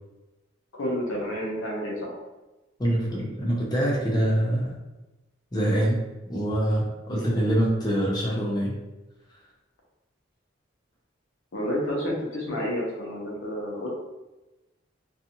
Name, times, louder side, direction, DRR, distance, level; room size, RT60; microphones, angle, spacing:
voice 1, 0.7-2.1 7.1-7.3 11.5-13.9, equal, 85° left, -2 dB, 0.7 m, -30 dB
voice 2, 2.8-4.7 5.5-6.0 6.3-8.8, right 1 dB, 20° left, -4 dB, 0.4 m, -24 dB
2.6 x 2.3 x 2.8 m, 1.1 s
head